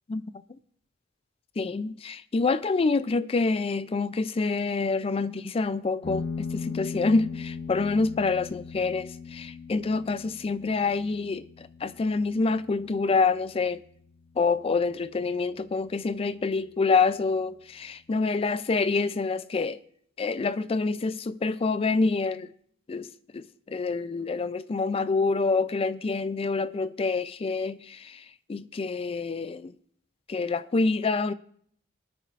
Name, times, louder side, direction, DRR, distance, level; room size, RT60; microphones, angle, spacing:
voice 1, 1.6-13.8 14.4-19.8 20.2-22.5 22.9-29.7 30.3-31.3, left 4 dB, 30° left, 0.3 m, -27 dB
sound 1, 6.0-15.1, left 5 dB, 80° left, 1.6 m, -39 dB
24.5 x 9.1 x 2.4 m
head